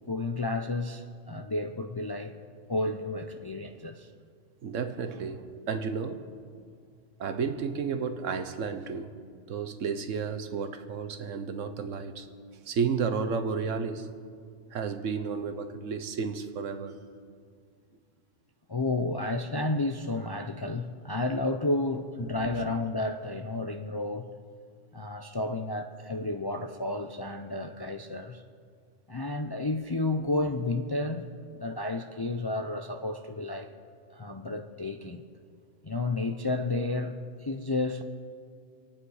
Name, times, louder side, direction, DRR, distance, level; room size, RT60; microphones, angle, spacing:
voice 1, 0.0-2.3 2.7-4.1 18.7-24.3 24.9-28.4 29.1-31.3 31.5-33.7 34.1-35.2 35.8-38.0, left 2 dB, 35° left, 5 dB, 0.4 m, -31 dB
voice 2, 4.6-6.2 7.2-9.1 9.5-12.3 12.7-14.1 14.7-17.0 22.2-22.3, right 5 dB, 80° right, 9 dB, 1.3 m, -32 dB
26.0 x 8.8 x 4.8 m, 2.1 s
omnidirectional pair, 1.3 m